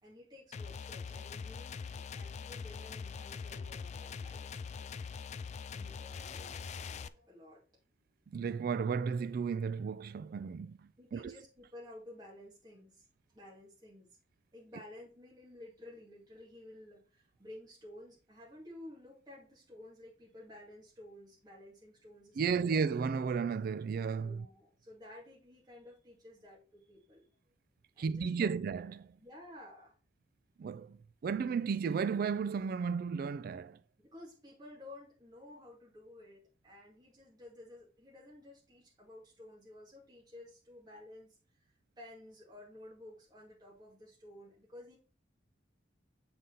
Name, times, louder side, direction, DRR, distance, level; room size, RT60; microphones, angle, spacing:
voice 1, 0.0-4.9 5.7-7.6 11.0-13.0 13.3-14.1 14.5-22.8 24.2-27.3 27.9-28.6 29.2-29.9 34.0-41.7 42.0-45.0, left 1 dB, 25° right, 2.2 m, -53 dB
sound 1, 0.5-7.1, left 5 dB, 40° left, 0.3 m, -43 dB
voice 2, 8.3-11.4 22.4-24.5 28.0-29.2 30.6-33.8, right 6 dB, 55° right, 0.3 m, -34 dB
7.7 x 4.0 x 3.9 m
head